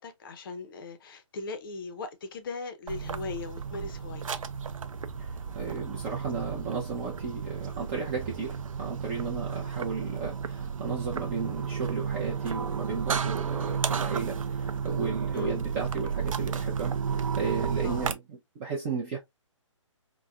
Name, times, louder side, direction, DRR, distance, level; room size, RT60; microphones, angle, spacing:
voice 1, 0.0-4.4 15.3-15.6 17.8-18.1, left 4 dB, 45° left, 0.5 m, -39 dB
sound 1, 2.9-18.1, right 6 dB, 85° right, 0.4 m, -32 dB
voice 2, 5.2-19.2, right 5 dB, 25° right, 0.5 m, -34 dB
3.4 x 2.1 x 2.2 m
hypercardioid pair, 140°, 17 cm